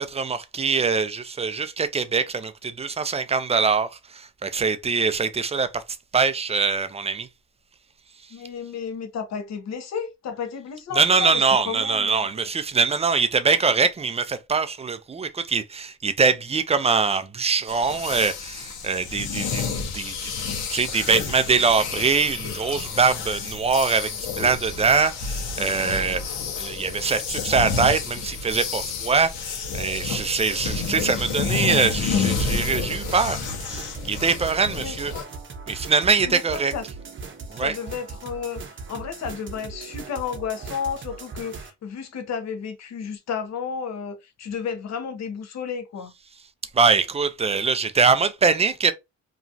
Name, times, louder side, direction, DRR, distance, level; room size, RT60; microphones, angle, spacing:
voice 1, 0.0-5.8 6.1-7.3 10.9-19.7 19.9-20.3 20.7-35.1 35.7-36.7 37.5-37.7 46.7-48.9, right 5 dB, 20° right, 0.4 m, -23 dB
voice 2, 8.3-12.3 34.8-35.3 36.3-36.8 37.5-38.6 38.9-46.1, left 6 dB, 60° left, 0.9 m, -32 dB
sound 1, 17.7-35.2, left 5 dB, 85° left, 0.8 m, -30 dB
sound 2, 30.7-41.7, right 4 dB, 40° right, 0.8 m, -39 dB
2.9 x 2.3 x 2.6 m
cardioid pair, 90°, 30 cm